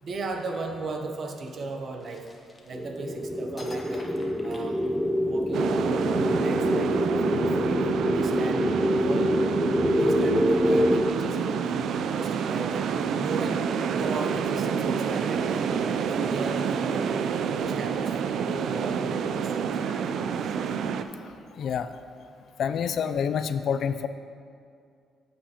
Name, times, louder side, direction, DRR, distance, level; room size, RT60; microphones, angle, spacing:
voice 1, 0.0-2.3 2.6-4.1 4.4-4.8 5.2-7.8 8.1-9.4 9.9-12.9 13.2-15.7 16.1-17.1 17.5-20.2, right 3 dB, 50° right, 4 dB, 0.8 m, -37 dB
sound 1, 2.0-3.1 3.6-5.4, left 2 dB, 25° left, 1.0 m, -47 dB
sound 2, 2.7-11.1, equal, 5° right, 0.6 m, -25 dB
sound 3, 5.5-21.0, right 6 dB, 70° right, 0.3 m, -28 dB
voice 2, 21.6-21.9 22.6-24.1, left 7 dB, 65° left, 11 dB, 0.3 m, -27 dB
8.6 x 7.0 x 2.9 m, 2.3 s
cardioid pair, 90°, 0 cm